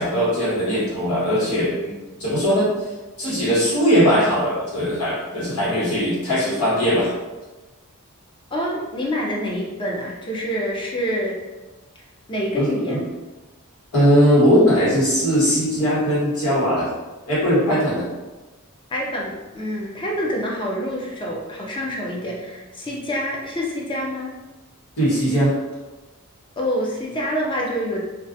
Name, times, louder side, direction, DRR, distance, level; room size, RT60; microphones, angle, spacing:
voice 1, 0.0-2.9 3.2-7.1 12.6-13.0 13.9-16.9 17.3-18.1 25.0-25.5, equal, 90° left, -9 dB, 1.4 m, -19 dB
voice 2, 8.5-11.4 12.3-13.0 18.9-24.3 26.6-28.0, equal, 20° left, -2 dB, 0.4 m, -26 dB
2.3 x 2.3 x 2.6 m, 1.2 s
head